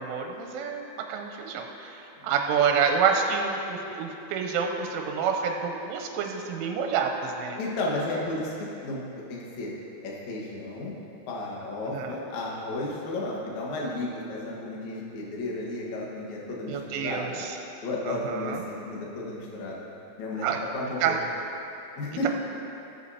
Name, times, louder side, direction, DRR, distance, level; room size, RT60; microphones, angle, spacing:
voice 1, 0.0-7.6 11.9-12.1 16.7-17.5 18.1-18.6 20.4-20.6 21.0-21.2, right 6 dB, 90° right, 3 dB, 3.2 m, -28 dB
voice 2, 7.6-9.0 9.3-9.7 10.0-10.9 11.3-17.4 17.8-19.9 20.2-20.5 20.7-21.2 22.0-22.3, left 2 dB, 65° left, -4 dB, 1.8 m, -33 dB
17.5 x 8.2 x 2.8 m, 2.8 s
omnidirectional pair, 5.6 m